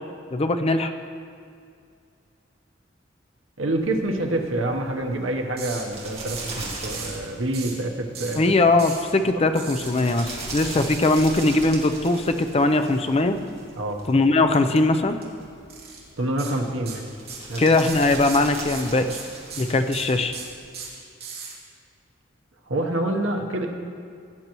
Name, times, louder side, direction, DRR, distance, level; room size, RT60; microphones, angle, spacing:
voice 1, 0.3-0.9 8.4-13.4 14.1-15.2 17.6-19.2 19.6-20.4, left 2 dB, 30° left, 8 dB, 0.6 m, -20 dB
voice 2, 3.6-8.4 13.8-14.0 16.2-17.1 17.5-17.6 22.7-23.7, right 1 dB, 90° right, 2 dB, 1.0 m, -27 dB
sound 1, 3.8-20.7, right 3 dB, 35° right, 1.9 m, -40 dB
sound 2, 5.6-5.8 6.3-6.6 6.9-7.2 7.5-7.8 8.1-8.4 8.8-9.0 9.6-9.9 10.8-11.4 14.5-14.8 15.1-15.2 15.7-16.0 16.4-16.5 16.9-17.5 17.8-21.5, right 6 dB, 55° right, 2.6 m, -37 dB
16.5 x 9.4 x 3.0 m, 2.3 s
head